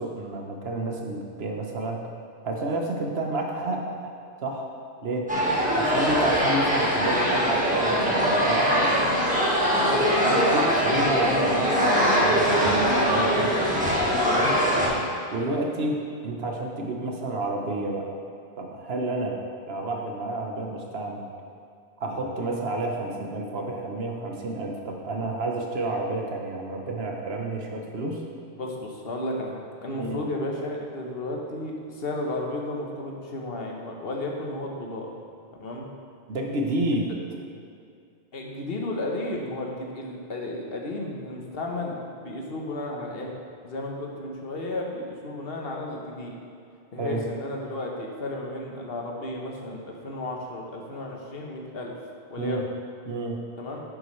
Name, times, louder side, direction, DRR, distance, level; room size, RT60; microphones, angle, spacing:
voice 1, 0.0-2.1 2.4-4.1 4.4-4.7 5.0-5.3 5.7-8.9 10.2-13.9 14.3-14.6 15.3-18.2 18.6-19.4 19.7-21.3 22.0-28.2 29.9-30.2 36.3-37.1 37.4-37.5 47.0-47.2 52.4-52.6 53.1-53.4, right 2 dB, 60° right, 1 dB, 1.2 m, -30 dB
sound 1, 5.3-14.9, equal, 5° right, 1.4 m, -22 dB
voice 2, 9.7-10.0 14.7-14.9 28.6-35.1 35.6-35.9 38.3-43.3 43.6-46.3 46.9-52.0 52.3-52.6 53.6-53.8, left 2 dB, 55° left, 0 dB, 1.3 m, -33 dB
10.0 x 7.5 x 3.2 m, 2.4 s
omnidirectional pair, 1.2 m